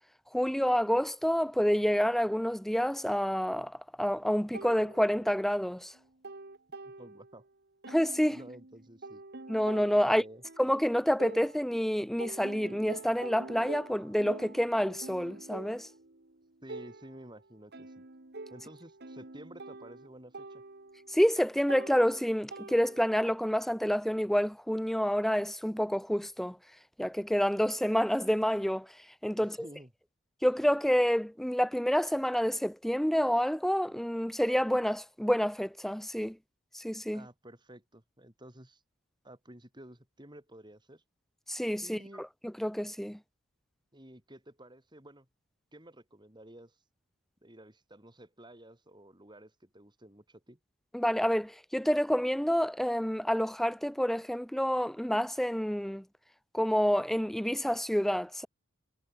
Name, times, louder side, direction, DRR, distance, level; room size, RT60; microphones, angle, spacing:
voice 1, 0.3-5.9 7.9-8.4 9.5-10.2 10.6-15.9 21.1-26.6 27.0-28.9 29.2-29.7 30.4-36.4 36.7-37.2 41.5-43.2 50.9-56.0 56.5-58.5, equal, ahead, 0.4 m, -28 dB
sound 1, 4.5-5.6 5.9-7.5 7.8-11.9 12.2-23.3, right 2 dB, 45° right, 1.5 m, -46 dB
voice 2, 6.8-7.5 8.3-9.2 10.0-10.4 16.6-18.0 18.5-20.6 29.4-29.9 37.1-38.8 39.2-41.0 41.8-42.3 43.9-45.3 45.7-46.8 47.4-50.6, right 1 dB, 20° right, 4.5 m, -52 dB
head